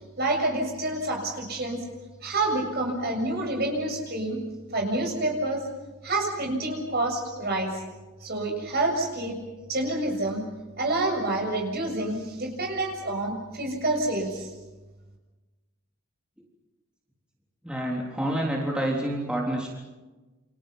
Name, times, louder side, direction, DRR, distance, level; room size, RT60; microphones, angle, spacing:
voice 1, 0.2-1.8 2.2-4.4 4.7-5.6 6.0-7.8 8.2-9.4 9.7-10.4 10.8-14.5, right 2 dB, 45° right, 2 dB, 7.1 m, -28 dB
voice 2, 17.6-19.7, right 1 dB, 5° right, -3 dB, 3.7 m, -28 dB
29.0 x 26.5 x 5.7 m, 1.2 s
head